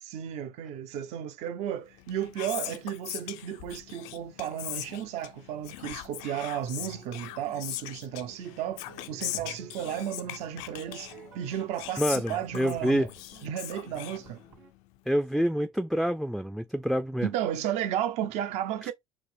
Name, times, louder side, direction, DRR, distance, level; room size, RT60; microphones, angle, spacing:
voice 1, 0.0-8.8 9.1-13.1 13.4-14.4 17.2-18.9, right 10 dB, 70° right, 0.7 m, -33 dB
Whispering, 1.9-14.8, left 14 dB, 75° left, 0.5 m, -40 dB
sound 1, 6.7-14.7, right 4 dB, 90° right, 1.7 m, -53 dB
voice 2, 12.0-13.1 15.1-17.3, equal, ahead, 0.3 m, -27 dB
4.5 x 2.0 x 3.4 m
supercardioid pair, 75°, 12 cm